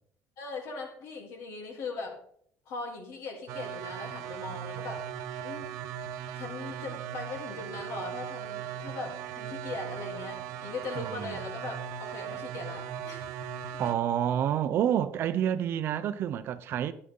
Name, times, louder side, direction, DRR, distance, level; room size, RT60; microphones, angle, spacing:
voice 1, 0.4-2.2 2.6-5.0 5.4-5.7 6.3-13.4, left 3 dB, 65° left, 3.4 m, -40 dB
sound 1, 3.5-13.9, right 9 dB, 80° right, 1.0 m, -38 dB
voice 2, 11.0-11.3 13.8-16.9, right 10 dB, 45° right, 0.7 m, -28 dB
12.0 x 9.8 x 3.8 m
cardioid pair, 160°, 5 cm